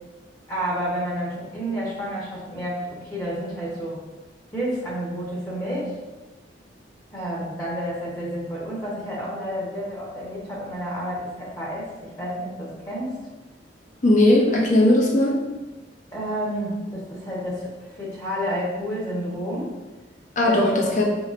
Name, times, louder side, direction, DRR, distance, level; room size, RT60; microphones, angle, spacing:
voice 1, 0.5-4.0 4.5-6.0 7.1-13.2 16.1-19.7 20.4-21.0, equal, 20° left, -6 dB, 1.1 m, -30 dB
voice 2, 14.0-15.4 20.4-21.0, left 1 dB, 45° left, -1 dB, 0.8 m, -18 dB
4.8 x 3.1 x 2.5 m, 1.2 s
head